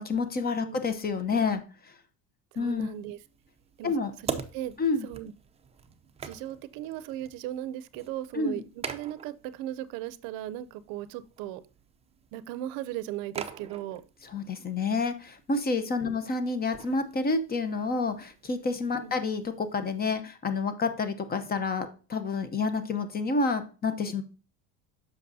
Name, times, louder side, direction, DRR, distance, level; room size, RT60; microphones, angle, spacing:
voice 1, 0.0-1.6 2.6-2.9 3.8-4.1 4.8-5.1 8.3-8.6 14.3-24.2, left 4 dB, 25° left, 10 dB, 0.8 m, -29 dB
voice 2, 2.5-3.2 3.8-4.0 4.2-4.7 5.0-5.3 6.2-11.6 12.3-14.0 16.0-16.2 19.0-19.1, right 12 dB, 70° right, 15 dB, 0.6 m, -37 dB
sound 1, 2.6-20.2, right 6 dB, 15° right, 0.5 m, -45 dB
7.7 x 5.9 x 2.7 m, 0.34 s
cardioid pair, 130°, 36 cm